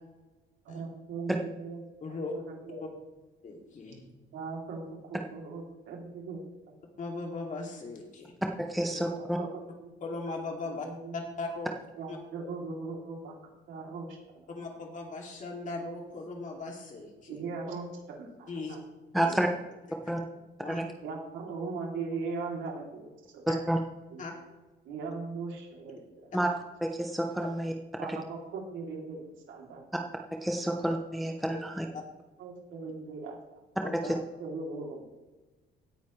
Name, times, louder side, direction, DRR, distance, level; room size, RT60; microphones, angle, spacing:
voice 1, 0.6-1.8 2.1-2.8 4.3-6.7 8.9-9.9 10.6-11.2 12.0-14.5 17.3-18.8 19.3-19.4 21.0-23.4 24.1-24.2 24.8-26.3 28.0-29.9 32.4-33.6 34.1-35.0, right 4 dB, 85° right, 0 dB, 3.1 m, -39 dB
voice 2, 2.0-2.3 3.4-4.1 7.0-8.3 10.0-10.9 11.1-11.7 12.1-12.2 14.5-17.4 18.5-18.8 19.1-19.3 19.9-20.0 20.6-20.8 23.5-23.6 24.2-24.3 26.3-26.4 31.5-31.6 31.9-32.0 33.8-33.9, left 3 dB, 40° left, 1 dB, 2.6 m, -38 dB
voice 3, 8.6-9.4 19.1-19.5 20.1-20.2 20.7-20.8 23.5-23.8 26.3-26.5 26.8-27.7 30.4-31.9 33.9-34.0, right 1 dB, ahead, 2 dB, 0.7 m, -29 dB
17.0 x 9.4 x 3.2 m, 1.2 s
cardioid pair, 150°, 19 cm